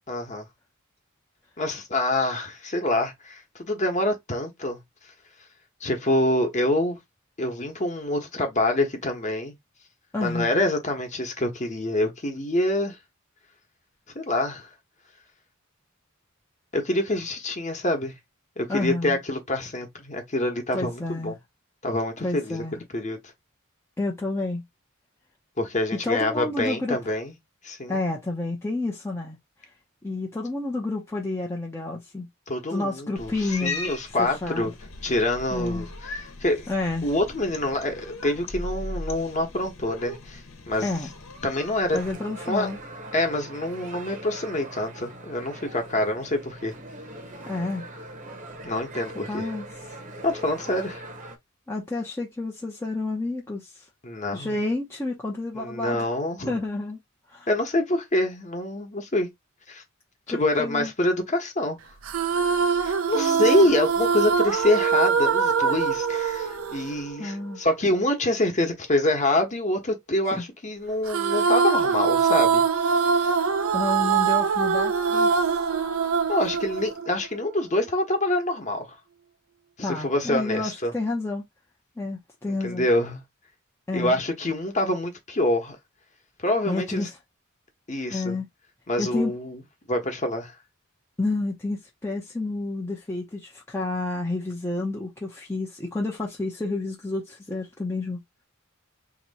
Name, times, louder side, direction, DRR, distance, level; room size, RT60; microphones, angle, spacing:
voice 1, 0.1-0.5 1.6-4.8 5.8-7.0 7.4-9.5 10.2-13.0 14.1-14.7 16.7-18.1 18.6-21.4 21.8-23.2 25.6-27.3 27.6-28.0 32.5-34.7 35.0-36.7 37.0-40.9 41.4-42.0 42.4-42.7 43.1-46.7 48.6-49.5 50.2-51.0 54.0-54.6 55.5-56.6 57.5-59.3 59.7-59.8 60.3-61.8 62.8-72.6 73.1-73.3 76.3-79.0 79.8-80.9 82.6-83.2 83.9-85.8 86.4-87.1 87.9-88.4 88.9-89.6 89.9-90.5, left 1 dB, 35° left, 1.1 m, -26 dB
voice 2, 10.1-10.6 18.7-19.2 20.7-21.4 22.2-22.8 24.0-24.6 25.9-27.0 27.9-29.4 30.0-32.3 32.7-33.8 34.2-34.7 35.5-35.9 36.7-37.1 40.8-41.1 41.9-42.8 47.5-47.9 49.3-49.7 51.7-53.8 54.3-56.1 56.5-57.0 57.3-57.5 60.3-60.9 63.1-63.5 67.2-67.6 70.3-70.4 73.7-75.6 79.8-81.4 82.0-82.9 83.9-84.2 86.7-87.1 88.1-88.5 89.0-89.3 91.2-98.2, left 2 dB, 10° left, 0.6 m, -30 dB
Cat, 33.2-42.1, left 2 dB, 70° left, 1.1 m, -38 dB
sound 1, 41.9-51.4, right 1 dB, 40° right, 0.9 m, -41 dB
sound 2, 62.0-67.6 71.1-77.5, right 6 dB, 80° right, 0.6 m, -23 dB
2.9 x 2.7 x 4.1 m
head